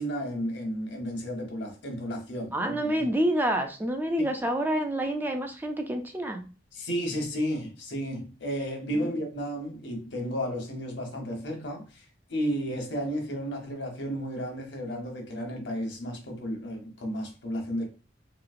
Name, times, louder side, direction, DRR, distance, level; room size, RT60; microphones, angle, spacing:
voice 1, 0.0-2.6 2.8-3.0 4.2-4.3 6.7-11.8 12.3-17.8, equal, 80° left, 1.0 m, -33 dB
voice 2, 2.5-6.4 8.9-9.1, right 1 dB, 10° right, 0.3 m, -28 dB
3.0 x 2.7 x 2.4 m
head